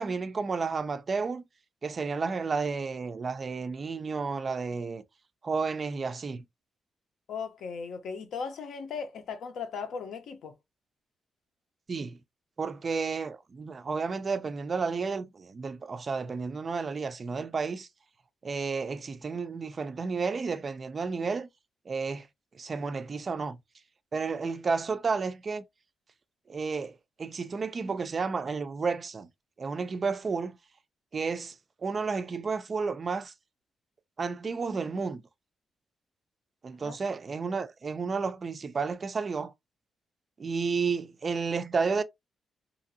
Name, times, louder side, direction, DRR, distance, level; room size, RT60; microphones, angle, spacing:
voice 1, 0.0-1.4 1.8-5.0 5.4-6.4 11.9-12.2 12.6-17.9 18.4-21.5 21.9-22.3 22.5-23.6 24.1-25.6 26.5-29.3 29.6-30.6 31.1-31.5 31.8-33.3 34.2-35.2 36.6-39.5 40.4-42.0, right 4 dB, 30° right, 0.3 m, -31 dB
voice 2, 7.3-10.5 36.8-37.1, left 5 dB, 70° left, 0.7 m, -37 dB
2.9 x 2.5 x 2.7 m
wide cardioid pair, 175°, 0 cm